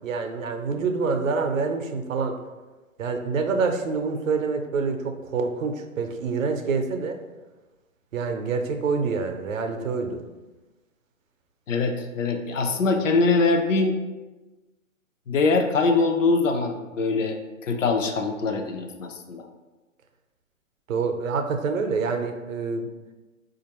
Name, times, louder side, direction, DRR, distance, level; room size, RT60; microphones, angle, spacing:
voice 1, 0.0-2.4 3.0-7.2 8.1-10.2 20.9-22.9, right 4 dB, 70° right, 6 dB, 0.6 m, -26 dB
voice 2, 11.7-14.0 15.3-17.4 17.6-19.5, left 3 dB, 65° left, 4 dB, 0.6 m, -23 dB
4.4 x 2.5 x 2.9 m, 1.2 s
hypercardioid pair, 130°, 41 cm